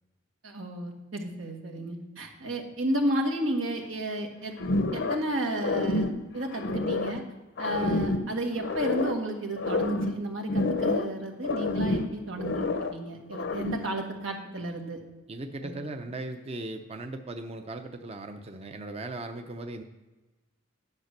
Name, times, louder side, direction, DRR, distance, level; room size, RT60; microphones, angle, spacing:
voice 1, 0.4-4.5 4.9-6.1 6.3-7.2 7.6-15.0 15.6-15.7, right 1 dB, 90° right, 2 dB, 1.7 m, -32 dB
sound 1, 4.6-5.3 5.6-7.2 7.6-9.2 9.6-11.2 11.4-13.0 13.3-13.9, left 2 dB, 65° left, 0.7 m, -29 dB
voice 2, 15.3-19.8, right 2 dB, 30° right, 6 dB, 0.6 m, -38 dB
10.5 x 5.9 x 6.6 m, 1.1 s
head